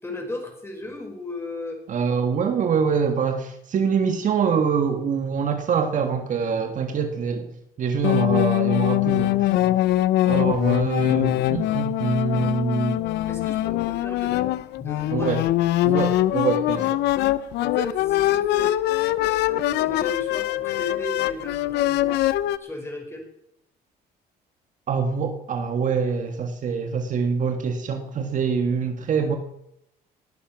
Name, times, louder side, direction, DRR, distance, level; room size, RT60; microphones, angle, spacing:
voice 1, 0.0-1.8 10.7-10.8 13.3-14.4 14.8-15.3 15.8-16.0 17.6-18.8 19.2-22.1 22.6-23.3, left 2 dB, 15° left, 3 dB, 5.1 m, -35 dB
voice 2, 1.9-7.5 7.8-9.5 10.2-13.0 15.1-15.5 15.8-17.0 24.9-29.4, right 6 dB, 50° right, 6 dB, 1.8 m, -24 dB
sound 1, 8.0-22.6, left 15 dB, 80° left, 0.7 m, -23 dB
20.0 x 11.5 x 6.0 m, 0.79 s
cardioid pair, 110°, 17 cm